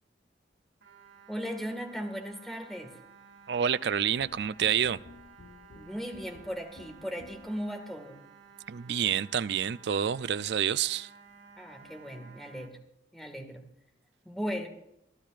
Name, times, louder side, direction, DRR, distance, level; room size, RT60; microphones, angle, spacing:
sound 1, 0.8-12.7, right 6 dB, 90° right, 3.7 m, -55 dB
voice 1, 1.3-2.9 5.8-8.2 11.6-12.8 13.1-13.6 14.3-14.7, equal, ahead, 1.8 m, -37 dB
voice 2, 3.5-5.0 8.7-11.1, right 8 dB, 65° right, 0.4 m, -28 dB
sound 2, 4.2-7.7, left 2 dB, 75° left, 0.9 m, -52 dB
23.0 x 14.0 x 2.5 m
head